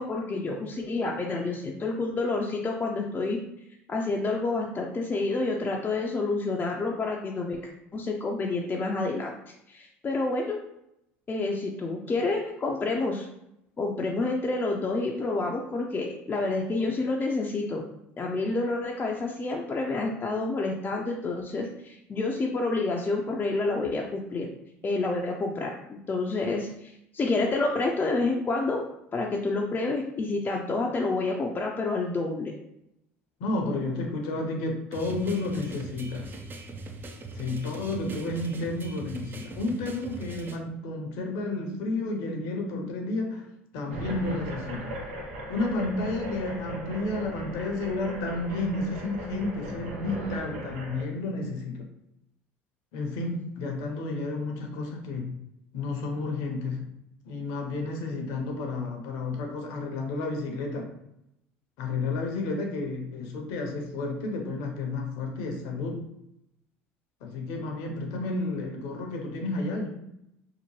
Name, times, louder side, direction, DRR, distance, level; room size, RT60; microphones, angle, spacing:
voice 1, 0.0-3.4 3.9-7.6 7.9-9.3 9.7-10.6 11.3-13.3 13.8-17.8 18.2-24.5 24.8-28.8 29.1-32.5, left 3 dB, 30° left, 0 dB, 0.4 m, -28 dB
voice 2, 33.4-36.3 37.3-43.5 43.7-44.9 45.5-51.9 52.9-55.3 55.7-56.9 57.3-60.9 61.8-66.0 67.2-69.9, left 2 dB, 70° left, 2 dB, 0.6 m, -31 dB
sound 1, 34.9-40.6, right 2 dB, 35° right, 0.5 m, -41 dB
sound 2, 43.9-51.0, right 1 dB, 85° right, 0.5 m, -38 dB
2.8 x 2.1 x 3.0 m, 0.82 s
hypercardioid pair, 70°, 6 cm